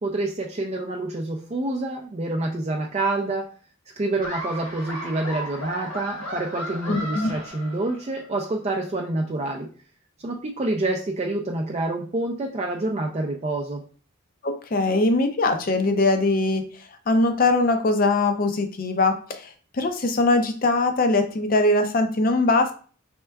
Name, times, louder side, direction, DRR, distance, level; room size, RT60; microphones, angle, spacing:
voice 1, 0.0-3.4 4.0-9.7 10.2-13.8, right 2 dB, 30° right, 0 dB, 0.3 m, -27 dB
Laughter, 4.2-8.2, equal, 65° left, 1.2 m, -35 dB
voice 2, 6.9-7.3 14.4-16.7 17.1-22.7, left 2 dB, 40° left, 7 dB, 0.4 m, -21 dB
4.3 x 3.4 x 2.2 m, 0.41 s
head